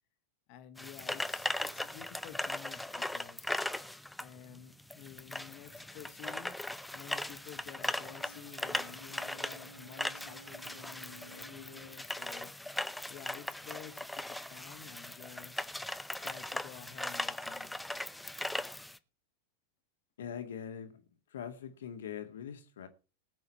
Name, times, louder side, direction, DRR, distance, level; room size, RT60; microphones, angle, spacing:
voice 1, 0.5-3.6 4.2-6.5 6.9-12.5 13.1-15.7 16.2-17.7, left 11 dB, 45° left, 2.0 m, -51 dB
sound 1, 0.8-19.0, left 1 dB, 5° left, 0.7 m, -39 dB
Brass instrument, 7.9-12.1, right 1 dB, 75° right, 1.3 m, -55 dB
voice 2, 20.2-21.0 21.3-22.9, left 8 dB, 60° left, 2.1 m, -42 dB
19.5 x 7.9 x 4.5 m
figure-of-eight pair, 90°, 0 cm